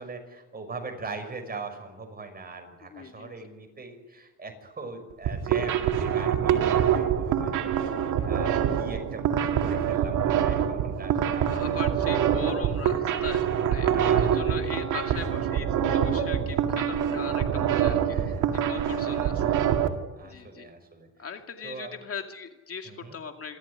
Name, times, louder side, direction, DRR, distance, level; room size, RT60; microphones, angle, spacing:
voice 1, 0.0-7.7 8.2-11.6 13.9-14.8 18.1-19.3 20.2-21.1 21.6-21.9 22.9-23.2, right 3 dB, 30° right, 5 dB, 6.1 m, -41 dB
voice 2, 2.8-3.3 7.9-8.5 11.5-18.2 18.5-19.5 20.2-20.7 21.2-23.6, left 6 dB, 50° left, 5 dB, 2.4 m, -40 dB
sound 1, 5.1-19.9, right 9 dB, 85° right, 2.2 m, -25 dB
28.0 x 13.5 x 9.9 m, 1.2 s
cardioid pair, 90°, 30 cm